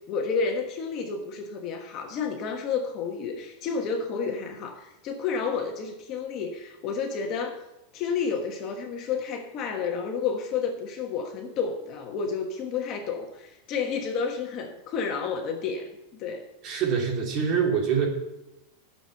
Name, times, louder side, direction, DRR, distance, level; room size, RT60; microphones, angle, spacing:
voice 1, 0.1-7.6 7.9-16.5, left 5 dB, 35° left, 3 dB, 1.3 m, -30 dB
voice 2, 16.6-18.1, right 6 dB, 35° right, 0 dB, 2.7 m, -25 dB
10.0 x 6.9 x 5.7 m, 0.92 s
supercardioid pair, 160°, 0 cm